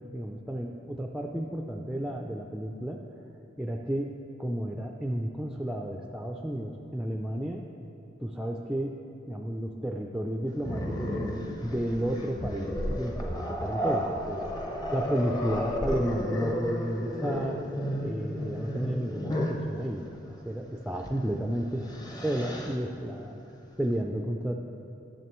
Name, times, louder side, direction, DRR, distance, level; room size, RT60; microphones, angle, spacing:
voice 1, 0.1-3.0 3.6-7.6 8.2-9.0 9.3-14.4 14.9-17.7 18.0-20.1 20.5-21.9 22.2-23.4 23.8-24.6, right 1 dB, 5° right, 1 dB, 0.3 m, -32 dB
Growling, 10.6-19.7 21.0-21.2 21.6-22.8, equal, 20° left, 0.7 m, -33 dB
14.0 x 7.1 x 3.1 m, 2.7 s
head